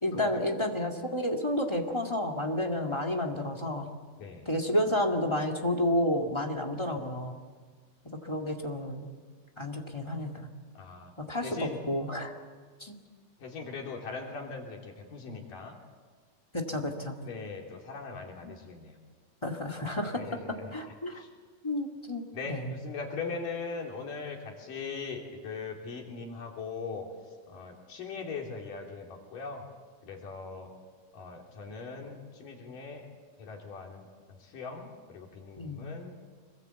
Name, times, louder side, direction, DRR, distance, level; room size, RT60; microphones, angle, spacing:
voice 1, 0.0-3.9 4.4-7.4 8.2-9.1 9.6-10.5 11.2-12.3 12.8-13.0 16.5-17.2 18.4-18.5 19.4-20.4 20.7-21.2 21.6-22.8 35.6-35.9, left 1 dB, 15° left, 2 dB, 1.2 m, -31 dB
voice 2, 10.7-11.1 11.4-11.8 13.4-15.8 17.2-19.0 19.7-19.8 20.2-20.7 21.1-21.3 22.3-27.1 27.5-29.7 30.0-30.7 31.1-33.1 33.4-36.2, left 4 dB, 80° left, 0 dB, 4.9 m, -40 dB
26.0 x 21.5 x 8.1 m, 1.5 s
omnidirectional pair, 3.8 m